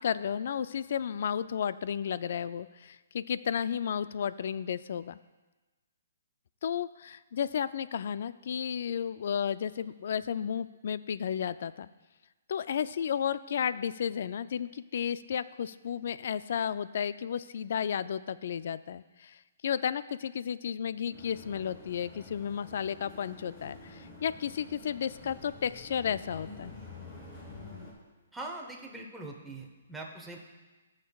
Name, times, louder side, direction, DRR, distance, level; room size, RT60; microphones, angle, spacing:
voice 1, 0.0-5.2 6.6-11.9 12.5-26.7, left 8 dB, 60° left, 15 dB, 0.3 m, -33 dB
sound 1, 21.1-27.9, left 3 dB, 25° left, 2.7 m, -48 dB
voice 2, 28.3-30.4, right 2 dB, ahead, -2 dB, 1.0 m, -42 dB
15.5 x 6.5 x 2.3 m, 1.2 s
hypercardioid pair, 155°, 0 cm